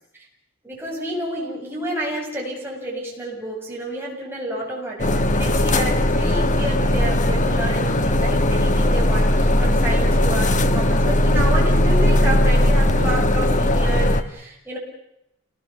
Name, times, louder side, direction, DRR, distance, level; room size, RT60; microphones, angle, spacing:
voice 1, 0.6-14.8, right 1 dB, 10° right, -3 dB, 7.2 m, -30 dB
sound 1, 5.0-14.2, left 1 dB, 35° left, 1.2 m, -18 dB
29.0 x 19.0 x 7.1 m, 0.85 s
head